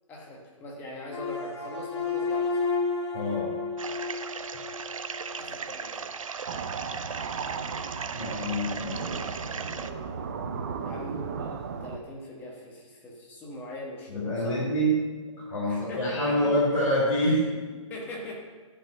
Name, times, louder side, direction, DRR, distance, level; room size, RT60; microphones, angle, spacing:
voice 1, 0.1-2.7 5.3-6.1 10.8-14.6 15.7-16.6 17.9-18.3, left 1 dB, 10° left, -2 dB, 1.3 m, -41 dB
sound 1, 1.1-5.4, left 4 dB, 55° left, 1.7 m, -31 dB
voice 2, 3.1-3.5 8.1-10.0 14.1-15.0 15.4-17.5, equal, 35° left, -9 dB, 3.7 m, -27 dB
sound 2, 3.8-9.9, right 6 dB, 90° right, 0.7 m, -37 dB
sound 3, 6.5-12.0, right 5 dB, 30° right, 0.6 m, -36 dB
10.5 x 5.6 x 7.0 m, 1.4 s
hypercardioid pair, 165°, 17 cm